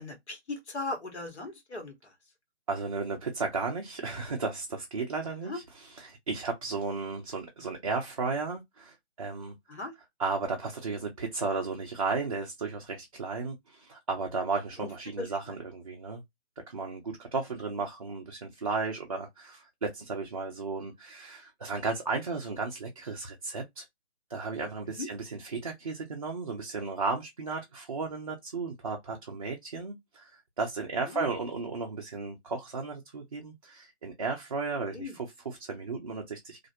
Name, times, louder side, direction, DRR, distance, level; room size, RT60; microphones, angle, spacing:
voice 1, 0.0-2.1 5.5-5.6 9.7-9.9 15.2-15.3 25.0-25.1 31.1-31.2 34.9-35.2, left 3 dB, 75° left, 1.2 m, -37 dB
voice 2, 2.7-9.6 10.2-16.2 16.7-23.8 24.3-30.3 30.6-36.7, right 4 dB, 35° right, 0.4 m, -34 dB
2.4 x 2.0 x 2.7 m
figure-of-eight pair, 145°, 34 cm